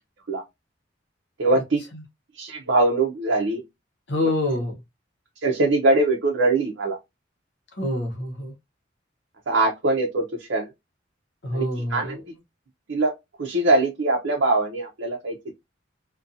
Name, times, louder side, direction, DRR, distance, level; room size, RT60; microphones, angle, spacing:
voice 1, 1.4-1.8 2.4-3.6 5.4-7.0 9.5-10.7 11.5-11.6 11.9-12.2 12.9-13.1 13.4-15.5, right 2 dB, 70° right, 0.6 m, -22 dB
voice 2, 4.1-4.8 7.7-8.5 11.4-12.2, left 1 dB, 60° left, 0.8 m, -26 dB
2.6 x 2.2 x 2.5 m
head